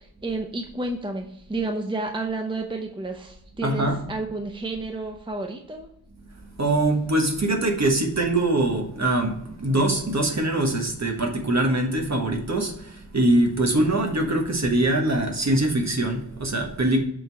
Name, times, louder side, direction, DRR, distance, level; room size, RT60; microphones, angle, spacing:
voice 1, 0.0-5.9, right 2 dB, 15° right, 4 dB, 0.7 m, -31 dB
voice 2, 3.6-4.0 6.6-17.0, right 1 dB, 45° right, 2 dB, 1.4 m, -23 dB
6.8 x 3.8 x 4.6 m, 0.73 s
wide cardioid pair, 65°, 38 cm